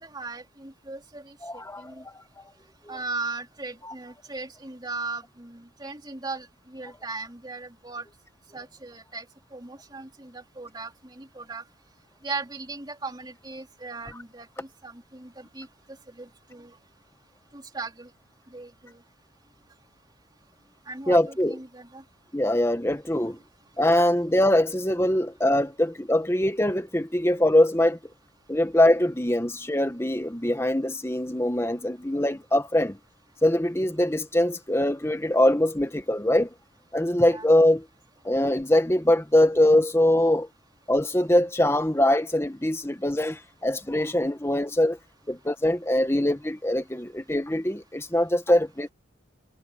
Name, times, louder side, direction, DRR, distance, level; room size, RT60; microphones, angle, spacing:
voice 1, 0.0-2.0 2.9-8.1 8.5-11.6 12.2-16.8 17.5-18.1 18.5-19.0 20.8-22.0 23.1-23.4 23.7-23.8 37.2-37.5, right 3 dB, 20° right, 3.3 m, -38 dB
voice 2, 1.4-1.9 3.8-3.9 21.1-21.5 22.3-23.4 23.8-28.0 28.5-33.0 33.4-36.5 36.9-37.8 38.2-40.5 40.9-45.0 45.3-48.9, left 1 dB, 15° left, 1.2 m, -23 dB
head